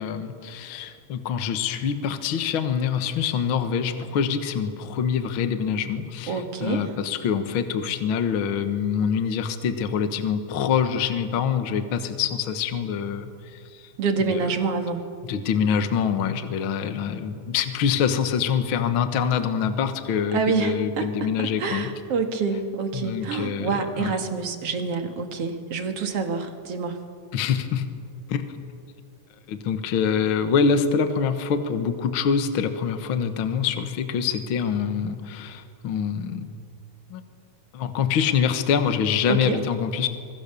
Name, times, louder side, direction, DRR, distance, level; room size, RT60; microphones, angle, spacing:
voice 1, 0.0-13.6 14.2-14.4 15.3-21.9 22.9-23.7 24.0-24.2 27.3-27.8 28.3-28.4 29.5-36.5 37.1-37.2 37.7-40.1, left 7 dB, 50° left, 8 dB, 1.8 m, -25 dB
voice 2, 6.3-6.9 14.0-15.0 20.3-27.0 39.3-39.6, right 5 dB, 55° right, 5 dB, 2.6 m, -27 dB
26.0 x 22.0 x 7.0 m, 2.2 s
omnidirectional pair, 3.5 m